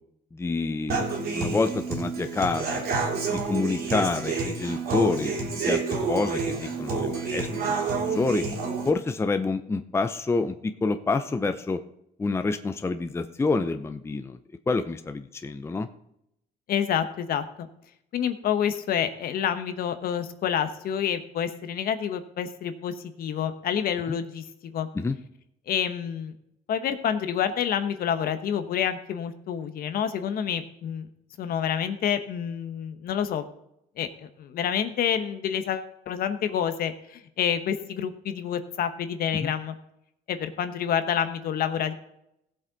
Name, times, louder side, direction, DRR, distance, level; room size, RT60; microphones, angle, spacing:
voice 1, 0.3-2.8 3.3-5.4 5.6-7.7 8.1-8.5 8.8-11.8 12.2-14.4 14.7-15.9 24.1-24.2 24.9-25.2 39.4-39.5, left 3 dB, 15° left, 9 dB, 0.6 m, -27 dB
Human voice / Acoustic guitar, 0.9-8.9, right 4 dB, 65° right, 3.1 m, -29 dB
voice 2, 16.7-17.7 18.1-24.9 25.7-26.3 26.7-31.1 31.4-33.4 34.0-39.7 40.3-41.9, left 8 dB, 60° left, 9 dB, 1.1 m, -28 dB
16.5 x 7.6 x 4.0 m, 0.79 s
cardioid pair, 110°, 17 cm